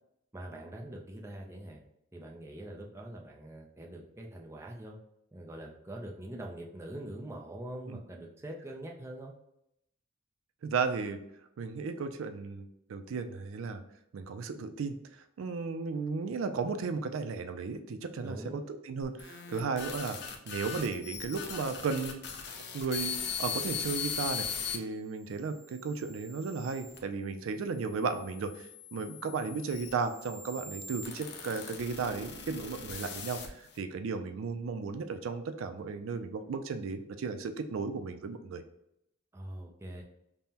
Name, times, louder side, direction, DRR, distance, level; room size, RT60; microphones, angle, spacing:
voice 1, 0.3-1.8 2.1-5.0 5.3-9.3 18.2-18.6 39.3-40.0, right 1 dB, 15° right, 0 dB, 0.4 m, -43 dB
voice 2, 10.6-11.2 11.6-13.8 14.1-14.9 15.4-22.2 22.7-38.6, right 4 dB, 90° right, 9 dB, 0.4 m, -35 dB
sound 1, 19.0-24.8 25.4-27.0 27.8-33.8, left 6 dB, 55° left, 0.5 m, -40 dB
5.4 x 2.1 x 2.8 m, 0.80 s
head